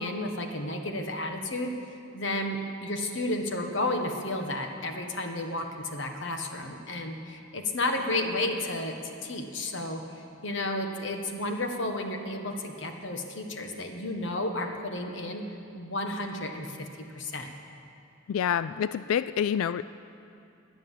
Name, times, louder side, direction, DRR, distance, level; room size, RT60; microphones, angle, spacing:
voice 1, 0.0-1.7 2.1-10.0 10.4-15.4 15.7-16.9 17.1-17.5, left 1 dB, 60° left, 4 dB, 1.4 m, -32 dB
voice 2, 18.3-19.8, left 8 dB, 85° left, 15 dB, 0.3 m, -27 dB
22.0 x 7.9 x 7.5 m, 2.6 s
head